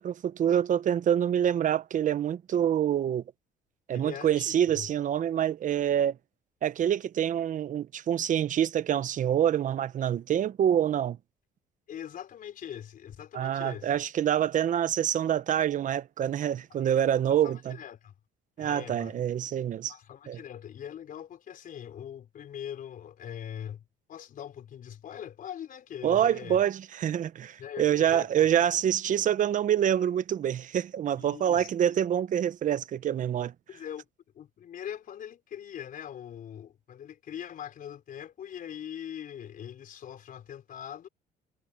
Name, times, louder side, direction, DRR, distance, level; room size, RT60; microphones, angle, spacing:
voice 1, 0.0-3.2 3.9-6.2 6.6-11.2 13.3-17.8 18.6-19.9 20.3-20.4 26.0-33.5, right 10 dB, 50° right, 1.0 m, -26 dB
voice 2, 3.9-4.9 11.9-13.9 16.8-17.0 17.3-18.1 18.6-19.2 19.9-23.8 24.1-26.6 27.6-28.7 31.1-31.7 33.7-34.1 34.3-41.1, left 9 dB, 55° left, 4.5 m, -42 dB
cardioid pair, 110°, 17 cm